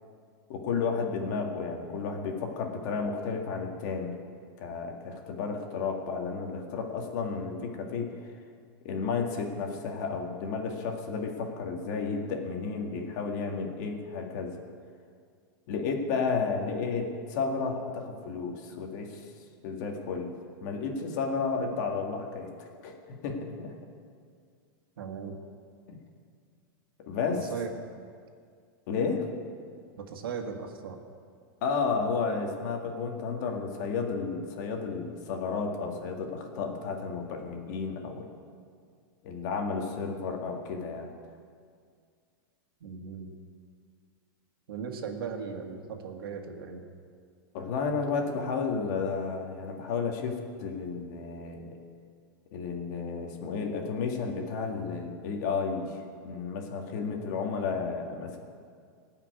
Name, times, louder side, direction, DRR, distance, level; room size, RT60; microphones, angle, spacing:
voice 1, 0.5-4.1 4.6-8.1 8.8-14.5 15.7-19.2 19.6-20.3 20.6-23.0 23.2-23.8 27.1-27.4 28.9-29.3 31.6-38.3 39.2-41.1 47.5-51.7 52.5-58.4, left 5 dB, 50° left, 2 dB, 2.0 m, -32 dB
voice 2, 25.0-25.3 27.3-27.7 30.0-31.0 42.8-43.3 44.7-46.8, right 6 dB, 90° right, 3 dB, 1.8 m, -38 dB
16.5 x 5.8 x 9.5 m, 2.2 s
supercardioid pair, 150°, 12 cm